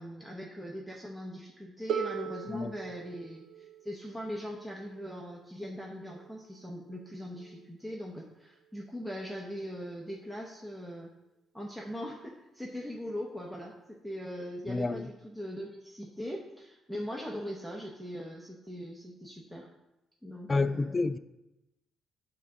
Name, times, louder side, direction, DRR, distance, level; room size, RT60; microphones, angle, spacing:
voice 1, 0.0-11.1 11.5-19.7 20.2-21.0, equal, 5° right, -2 dB, 0.8 m, -40 dB
Harp, 1.9-7.7 8.7-8.8, right 7 dB, 80° right, 0.8 m, -41 dB
voice 2, 14.7-15.1 20.5-21.2, left 3 dB, 20° left, 13 dB, 0.3 m, -29 dB
9.0 x 3.8 x 6.0 m, 0.94 s
cardioid pair, 135°, 0 cm